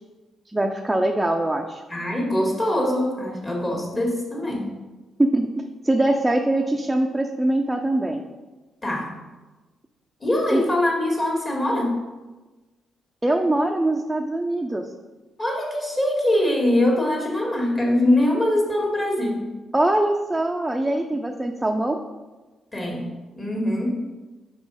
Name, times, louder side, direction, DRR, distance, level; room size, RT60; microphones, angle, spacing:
voice 1, 0.5-1.8 5.2-8.2 10.5-10.6 13.2-14.8 19.7-22.0, right 1 dB, 10° right, 2 dB, 0.5 m, -22 dB
voice 2, 1.9-4.7 8.8-9.1 10.2-12.0 15.4-19.5 22.7-23.1 23.3-24.1, left 1 dB, 30° left, -2 dB, 1.9 m, -23 dB
5.2 x 3.8 x 4.8 m, 1.2 s
cardioid pair, 70°, 0 cm